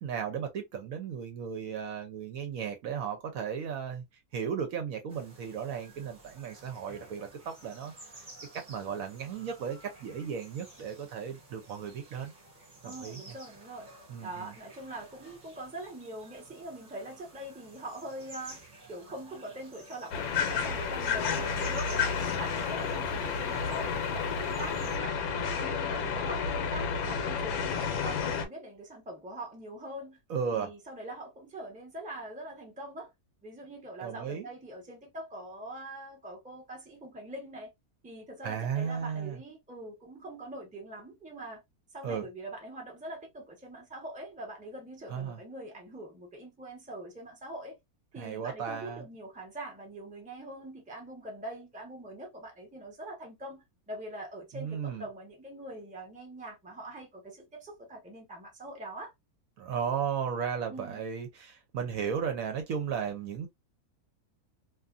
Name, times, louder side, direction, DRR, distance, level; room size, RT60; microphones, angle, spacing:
voice 1, 0.0-4.0 4.3-8.3 8.5-12.3 12.8-13.2 14.1-14.5 30.3-30.7 34.0-34.5 38.4-39.4 42.0-42.3 45.1-45.4 48.2-49.0 54.5-55.1 59.6-63.5, right 7 dB, 70° right, 1.0 m, -35 dB
sound 1, 5.1-25.0, right 1 dB, 35° right, 0.8 m, -51 dB
voice 2, 12.8-13.9 14.2-18.6 18.9-25.2 25.6-30.2 30.5-33.1 33.4-37.7 38.0-41.6 41.9-47.8 48.1-59.1 60.7-61.0, right 1 dB, 5° right, 0.6 m, -43 dB
sound 2, 20.1-28.5, left 6 dB, 75° left, 1.1 m, -31 dB
2.6 x 2.5 x 2.4 m
omnidirectional pair, 1.7 m